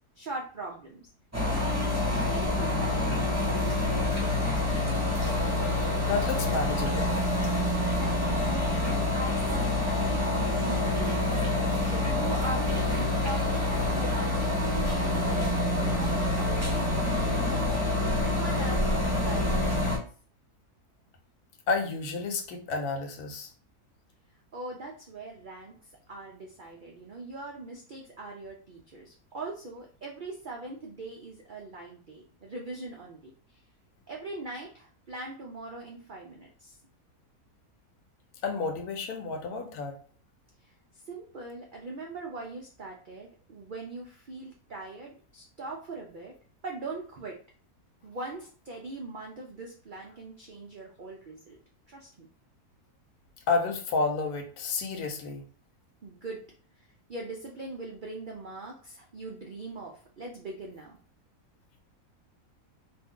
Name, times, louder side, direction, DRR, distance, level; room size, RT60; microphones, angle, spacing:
voice 1, 0.2-1.1 1.5-4.6 7.8-17.8 18.2-19.9 24.5-25.7 26.1-33.6 34.1-36.8 40.6-40.7 41.0-46.3 46.6-47.4 48.0-51.6 51.9-52.3 56.0-56.4 56.8-61.0, right 2 dB, 85° right, 0 dB, 0.4 m, -41 dB
sound 1, 1.3-20.0, left 2 dB, 15° right, 0.5 m, -27 dB
voice 2, 5.7-7.2 21.7-23.5 38.4-40.0 53.5-55.4, left 4 dB, 80° left, 4 dB, 1.2 m, -31 dB
2.7 x 2.6 x 3.5 m, 0.41 s
omnidirectional pair, 1.6 m